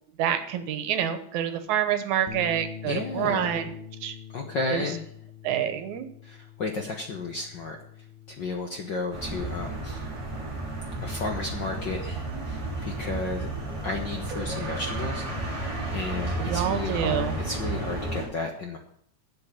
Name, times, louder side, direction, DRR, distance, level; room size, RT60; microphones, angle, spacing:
voice 1, 0.2-3.7 4.0-4.2 4.7-4.9 5.4-6.1 16.4-17.3, right 9 dB, 75° right, 10 dB, 2.4 m, -27 dB
Bass guitar, 2.3-8.5, left 9 dB, 80° left, 2.6 m, -44 dB
voice 2, 2.9-3.5 4.3-5.0 6.2-7.8 8.4-10.0 11.0-13.5 13.8-15.7 15.9-18.8, left 3 dB, 60° left, 3 dB, 1.2 m, -33 dB
sound 1, 9.1-18.3, right 2 dB, 10° right, 3.1 m, -32 dB
8.4 x 7.7 x 8.6 m, 0.68 s
omnidirectional pair, 3.4 m